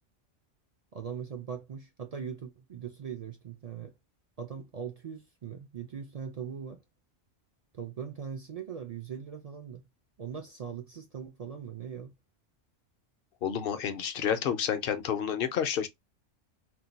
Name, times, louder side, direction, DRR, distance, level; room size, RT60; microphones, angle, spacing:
voice 1, 0.9-3.9 4.4-6.8 7.7-9.8 10.2-12.1, right 7 dB, 60° right, 0.3 m, -40 dB
voice 2, 13.4-15.9, left 8 dB, 60° left, 0.7 m, -30 dB
2.7 x 2.1 x 3.9 m
omnidirectional pair, 1.2 m